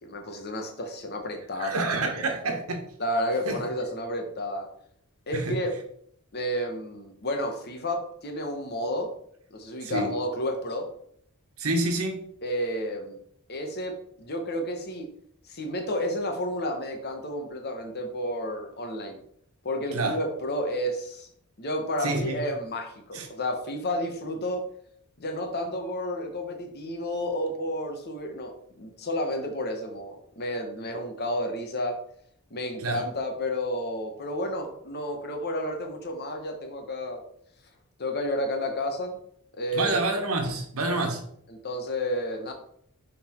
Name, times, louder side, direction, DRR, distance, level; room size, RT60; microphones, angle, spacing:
voice 1, 0.0-2.3 3.0-4.7 5.3-5.7 6.3-9.1 9.5-10.9 12.4-13.2 13.5-15.1 15.5-19.2 19.6-21.3 21.6-24.6 25.2-28.5 28.8-32.0 32.5-37.2 38.0-39.2 39.5-40.0 40.9-41.0 41.5-42.5, left 1 dB, 50° left, 4 dB, 1.2 m, -31 dB
voice 2, 1.6-2.8 3.5-3.6 5.3-5.6 9.8-10.1 11.6-12.2 19.9-20.2 22.0-22.4 23.1-23.3 32.8-33.0 39.7-41.2, right 2 dB, 75° right, 3 dB, 1.3 m, -28 dB
6.0 x 4.0 x 4.5 m, 0.66 s
head